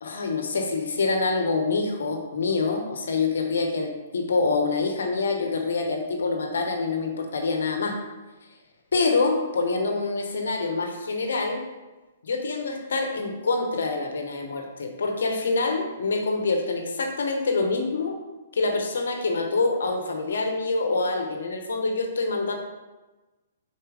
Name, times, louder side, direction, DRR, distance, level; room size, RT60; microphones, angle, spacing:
voice 1, 0.0-8.0 8.9-11.6 12.2-18.2 18.5-22.6, left 3 dB, 75° left, 4 dB, 1.0 m, -26 dB
4.6 x 4.3 x 4.8 m, 1.1 s
hypercardioid pair, 135°, 0 cm